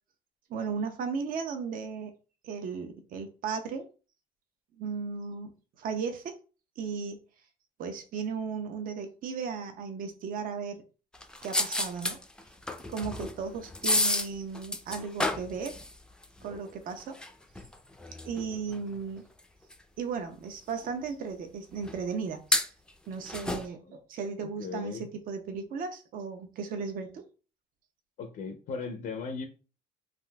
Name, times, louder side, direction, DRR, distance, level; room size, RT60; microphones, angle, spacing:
voice 1, 0.5-2.1 2.4-3.8 4.8-5.5 5.8-6.3 6.8-7.2 7.8-10.8 11.4-12.2 12.9-15.7 16.4-17.2 18.3-19.2 20.0-22.7 23.1-27.2, right 5 dB, 55° right, 0.6 m, -35 dB
sound 1, 11.1-19.4 19.7-19.8 20.7-20.9 21.8-22.1 22.5-23.7, left 1 dB, 5° left, 0.4 m, -32 dB
voice 2, 24.4-25.1 28.2-29.5, left 5 dB, 60° left, 0.5 m, -38 dB
3.6 x 2.4 x 2.2 m
cardioid pair, 110°, 17 cm